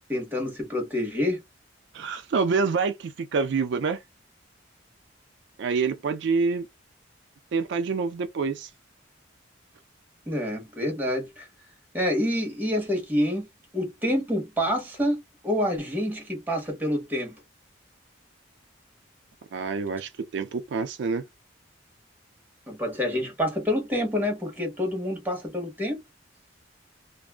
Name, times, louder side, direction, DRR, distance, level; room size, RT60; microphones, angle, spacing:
voice 1, 0.1-1.4 10.3-11.5 11.9-13.5 13.7-17.4 22.7-26.0, left 1 dB, 10° right, 1.0 m, -27 dB
voice 2, 1.9-4.0 5.6-6.7 7.5-8.7 19.5-21.2, right 4 dB, 65° right, 0.4 m, -27 dB
2.6 x 2.4 x 2.3 m
head